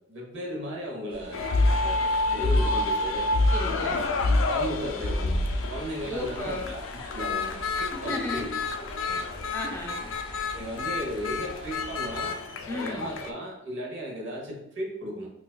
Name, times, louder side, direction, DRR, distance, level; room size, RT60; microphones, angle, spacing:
voice 1, 0.1-3.3 4.2-8.5 8.8-9.2 10.5-12.4 12.6-15.3, equal, 65° right, -2 dB, 1.0 m, -36 dB
sound 1, 1.1-12.3, equal, 25° right, 0.7 m, -46 dB
sound 2, 1.3-13.3, left 2 dB, 80° left, 0.4 m, -28 dB
voice 2, 3.5-4.1 6.0-6.7 7.9-8.5 9.5-10.1 12.7-13.1, left 1 dB, 15° left, -1 dB, 0.4 m, -34 dB
4.9 x 2.3 x 2.3 m, 0.82 s
head